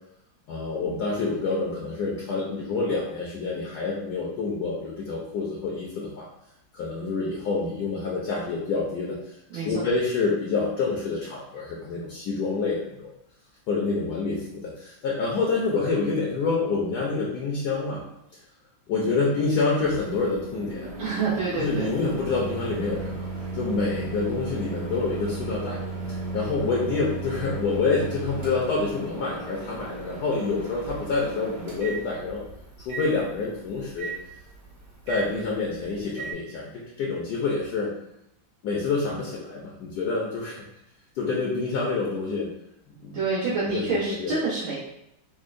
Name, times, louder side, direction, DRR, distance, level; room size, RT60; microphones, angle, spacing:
voice 1, 0.5-6.3 6.7-9.1 9.6-13.1 13.7-18.0 18.9-20.9 21.5-23.2 23.5-25.8 26.3-32.4 32.8-34.1 35.1-37.9 38.6-40.7 41.1-42.5 43.0-43.2 43.6-44.3, left 4 dB, 70° left, -4 dB, 1.0 m, -27 dB
voice 2, 9.5-9.8 21.0-21.9 43.1-44.7, right 3 dB, 75° right, -12 dB, 1.8 m, -27 dB
Microwave oven, 19.8-36.3, right 3 dB, 55° right, 1.1 m, -36 dB
5.3 x 2.1 x 2.5 m, 0.82 s
omnidirectional pair, 2.2 m